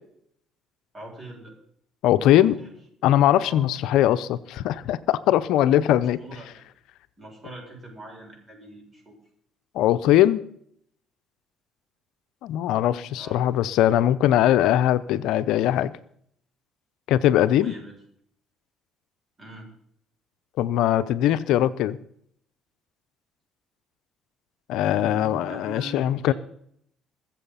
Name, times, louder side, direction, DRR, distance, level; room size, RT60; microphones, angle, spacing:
voice 1, 0.9-1.5 2.4-2.8 3.4-3.7 6.2-6.5 7.2-9.2 13.1-13.4 17.5-18.0 19.4-19.7 24.9-26.3, right 2 dB, 25° right, 0 dB, 7.3 m, -42 dB
voice 2, 2.0-2.6 3.0-6.2 9.7-10.4 12.4-15.9 17.1-17.7 20.6-22.0 24.7-26.3, left 12 dB, 75° left, 13 dB, 0.7 m, -21 dB
22.0 x 7.7 x 5.7 m, 0.67 s
supercardioid pair, 85°, 0 cm